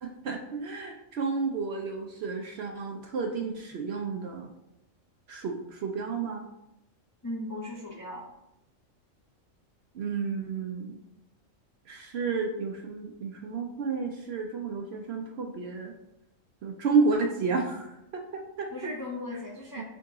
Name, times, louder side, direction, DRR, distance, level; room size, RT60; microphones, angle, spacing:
voice 1, 0.0-4.5 5.3-6.4 9.9-10.9 11.9-15.9 16.6-18.7 19.8-19.9, right 4 dB, 65° right, 2 dB, 0.7 m, -31 dB
voice 2, 7.2-8.3 18.7-19.8, left 1 dB, 25° left, -3 dB, 0.5 m, -37 dB
3.8 x 3.7 x 3.6 m, 0.86 s
omnidirectional pair, 1.4 m